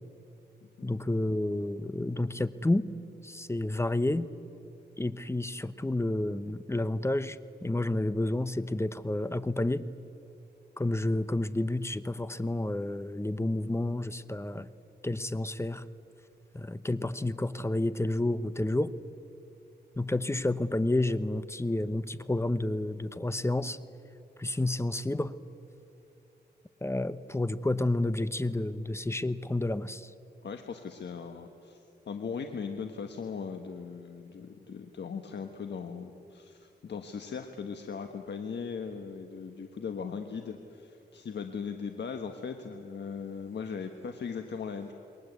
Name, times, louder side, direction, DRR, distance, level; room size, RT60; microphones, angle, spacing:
voice 1, 0.8-2.9 3.2-4.3 5.0-9.8 10.8-14.7 15.0-15.8 16.5-18.9 20.0-23.8 24.4-25.4 26.8-30.1, left 2 dB, 15° left, 14 dB, 0.9 m, -30 dB
voice 2, 30.4-44.9, left 6 dB, 75° left, 6 dB, 1.4 m, -39 dB
28.5 x 22.0 x 8.3 m, 2.7 s
cardioid pair, 80°, 18 cm